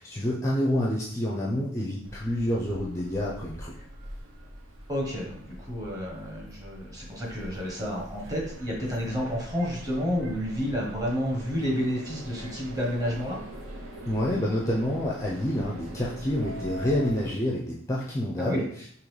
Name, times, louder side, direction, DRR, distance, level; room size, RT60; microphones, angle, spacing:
voice 1, 0.0-3.9 14.1-18.9, left 1 dB, 15° left, -4 dB, 0.4 m, -28 dB
sound 1, 2.0-17.3, right 1 dB, 75° right, 0.7 m, -43 dB
voice 2, 4.9-13.4 18.4-18.6, equal, 20° right, -3 dB, 1.0 m, -30 dB
3.8 x 2.9 x 3.2 m, 0.63 s
head